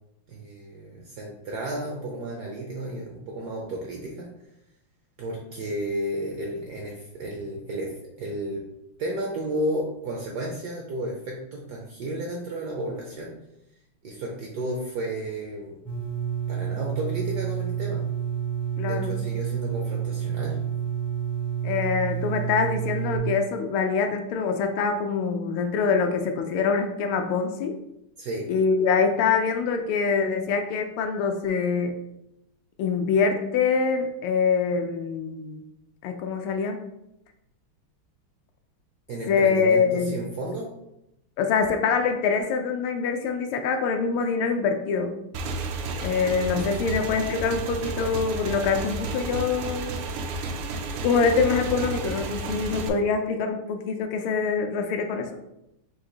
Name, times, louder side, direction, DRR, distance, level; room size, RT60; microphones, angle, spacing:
voice 1, 0.3-4.3 5.2-8.6 9.0-13.3 14.0-15.7 16.5-18.0 18.8-20.6 28.2-28.5 39.1-40.7, right 1 dB, 70° right, -1 dB, 0.9 m, -32 dB
sound 1, 15.9-23.2, right 8 dB, ahead, 0.4 m, -29 dB
voice 2, 18.8-19.1 21.6-27.8 28.5-31.9 32.8-35.6 36.0-36.8 39.3-40.2 41.4-45.2 46.0-49.9 51.0-55.3, left 5 dB, 80° left, 5 dB, 1.3 m, -24 dB
Motorcycle / Engine, 45.3-52.9, right 3 dB, 90° right, 1.5 m, -32 dB
4.8 x 2.6 x 3.7 m, 0.84 s
omnidirectional pair, 2.4 m